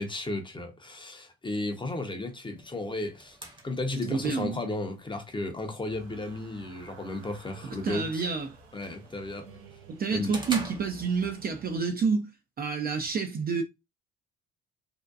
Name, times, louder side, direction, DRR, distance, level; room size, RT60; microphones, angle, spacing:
voice 1, 0.0-3.4 3.6-8.3 8.7-9.5 10.1-10.3, left 2 dB, 15° left, 0.6 m, -34 dB
sound 1, 2.6-11.6, right 2 dB, 15° right, 0.8 m, -46 dB
voice 2, 4.0-4.6 7.6-8.5 9.9-12.3 12.6-13.6, right 5 dB, 30° right, 0.4 m, -29 dB
sound 2, 5.9-11.9, right 3 dB, 85° right, 0.7 m, -51 dB
2.7 x 2.1 x 2.3 m
hypercardioid pair, 65°, 29 cm